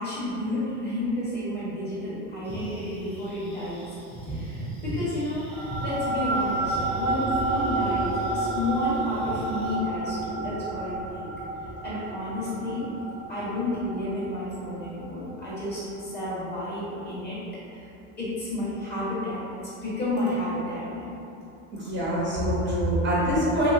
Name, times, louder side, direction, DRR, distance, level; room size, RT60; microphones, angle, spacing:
voice 1, 0.0-3.8 4.2-11.3 11.6-12.9 13.3-17.4 17.7-17.9 18.2-21.2, left 1 dB, 25° left, -9 dB, 1.3 m, -31 dB
sound 1, 2.4-9.8, right 1 dB, 5° left, 0.8 m, -39 dB
sound 2, 5.5-16.3, right 2 dB, 85° right, 0.8 m, -30 dB
voice 2, 21.7-23.7, equal, 30° right, -8 dB, 0.8 m, -24 dB
2.9 x 2.9 x 2.6 m, 2.8 s
supercardioid pair, 120°, 36 cm